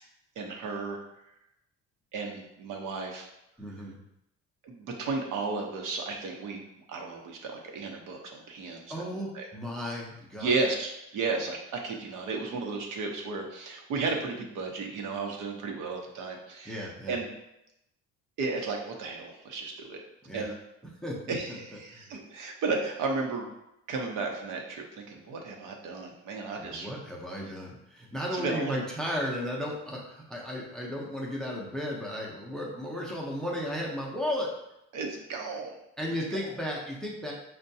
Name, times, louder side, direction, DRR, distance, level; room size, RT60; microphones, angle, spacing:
voice 1, 0.4-1.0 2.1-3.3 4.6-6.6 6.9-9.5 10.4-17.3 18.4-20.0 20.3-20.5 21.3-23.5 23.9-26.9 28.3-28.8 34.9-35.8, right 3 dB, 85° right, 1 dB, 0.8 m, -34 dB
voice 2, 3.6-4.0 8.9-10.5 16.7-17.2 20.2-20.5 21.0-22.1 26.5-34.5 36.0-37.3, equal, ahead, -2 dB, 0.4 m, -35 dB
5.3 x 2.2 x 2.6 m, 0.85 s
cardioid pair, 160°, 31 cm